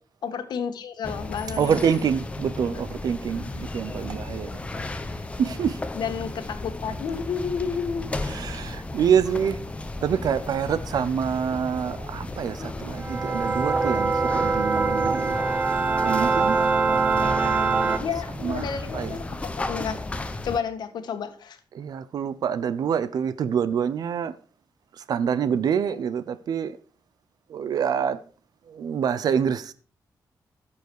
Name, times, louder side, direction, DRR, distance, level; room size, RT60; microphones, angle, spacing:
voice 1, 0.2-1.9 5.9-8.1 18.0-19.3 19.6-20.0 20.4-21.6, left 6 dB, 75° left, 1.5 m, -31 dB
sound 1, 1.0-20.6, left 2 dB, 15° left, 0.8 m, -34 dB
voice 2, 1.6-4.5 5.4-5.8 8.3-9.6 10.0-15.4 16.0-18.0 18.4-18.7 18.9-19.2 21.7-24.3 25.1-26.8 27.5-28.2 28.7-29.7, right 7 dB, 65° right, 0.6 m, -26 dB
sound 2, 13.0-18.0, right 4 dB, 20° right, 0.7 m, -23 dB
14.5 x 7.0 x 4.7 m
wide cardioid pair, 180°, 7 cm